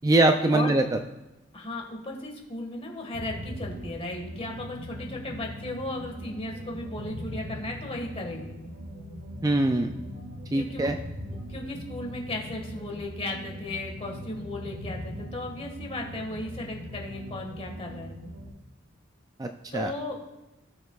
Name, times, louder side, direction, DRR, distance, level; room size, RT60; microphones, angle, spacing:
voice 1, 0.0-1.0 9.4-9.9 10.5-11.0 19.4-19.9, right 2 dB, 20° right, 5 dB, 0.3 m, -23 dB
voice 2, 1.5-8.5 10.5-10.9 11.2-18.1 19.7-20.3, left 1 dB, 30° left, 1 dB, 1.7 m, -36 dB
sound 1, 3.1-18.5, left 1 dB, 60° right, 3.5 m, -40 dB
17.5 x 6.7 x 2.4 m, 1.0 s
head